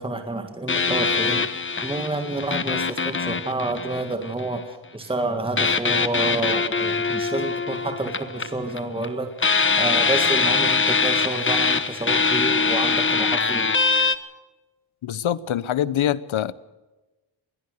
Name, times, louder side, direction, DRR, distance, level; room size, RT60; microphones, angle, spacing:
voice 1, 0.0-1.4 1.8-13.7, right 2 dB, 10° right, 5 dB, 2.0 m, -29 dB
sound 1, 0.7-4.5 5.6-9.1 9.4-14.2, left 4 dB, 25° left, 1.1 m, -23 dB
voice 2, 15.0-16.5, left 10 dB, 75° left, 18 dB, 1.0 m, -24 dB
22.0 x 17.5 x 6.7 m, 1.1 s
wide cardioid pair, 130°, 48 cm